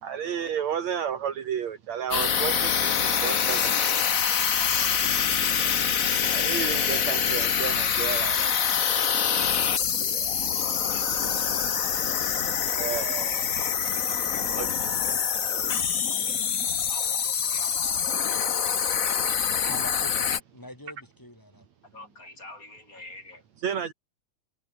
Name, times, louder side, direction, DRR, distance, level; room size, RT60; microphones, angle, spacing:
voice 1, 0.0-3.7 6.3-8.5 12.8-13.4 14.6-14.9 23.6-23.9, right 8 dB, 70° right, 3.2 m, -32 dB
sound 1, 2.1-20.4, left 7 dB, 50° left, 0.9 m, -25 dB
voice 2, 4.0-4.9 10.9-11.1 11.7-11.9 13.2-13.3 13.9-14.7 16.9-18.2 19.1-19.2 21.9-23.4, left 2 dB, 25° left, 7.3 m, -45 dB
voice 3, 19.6-21.7, left 1 dB, 5° left, 4.6 m, -42 dB
omnidirectional pair, 3.4 m